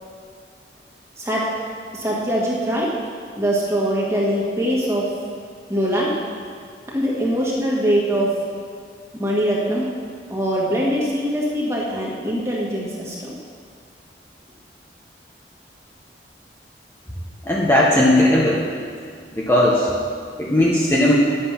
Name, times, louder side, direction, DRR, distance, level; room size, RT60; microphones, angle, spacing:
voice 1, 1.9-2.9 3.4-5.1 5.7-6.1 6.9-8.3 9.1-9.9 10.3-13.3, equal, 15° right, -5 dB, 1.9 m, -22 dB
voice 2, 17.4-18.6 19.3-19.9 20.4-21.1, left 1 dB, 15° left, -6 dB, 1.1 m, -17 dB
10.5 x 8.1 x 5.8 m, 2.1 s
head